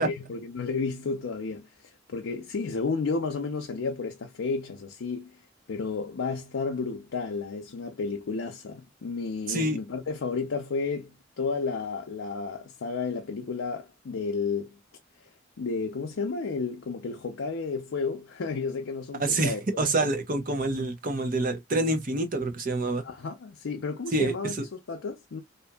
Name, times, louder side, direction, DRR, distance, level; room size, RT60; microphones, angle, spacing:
voice 1, 0.0-5.4 5.7-14.8 15.2-15.3 15.6-19.9 23.0-25.4, left 4 dB, 85° left, 0.5 m, -32 dB
voice 2, 9.5-9.8 19.2-23.0 24.1-24.3, right 2 dB, 45° right, 0.7 m, -26 dB
2.8 x 2.5 x 2.2 m
head